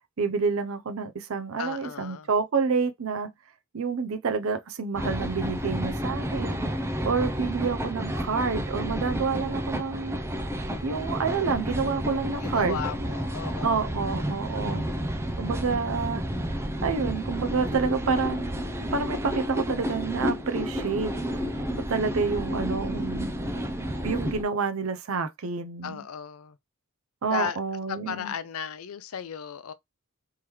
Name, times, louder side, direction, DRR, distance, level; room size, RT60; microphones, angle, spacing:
voice 1, 0.2-3.3 3.7-6.6 7.0-10.2 10.8-12.8 13.6-14.9 15.4-16.2 16.8-18.5 18.9-21.1 21.9-23.3 24.0-26.0 27.2-28.3, right 5 dB, 65° right, 0.6 m, -28 dB
voice 2, 1.6-2.3 12.4-14.0 25.8-26.6 27.3-27.6 27.9-29.7, left 7 dB, 75° left, 0.5 m, -35 dB
sound 1, 4.9-24.4, equal, 10° right, 0.4 m, -31 dB
sound 2, 16.8-20.2, right 3 dB, 90° right, 0.9 m, -51 dB
3.6 x 3.1 x 3.0 m
head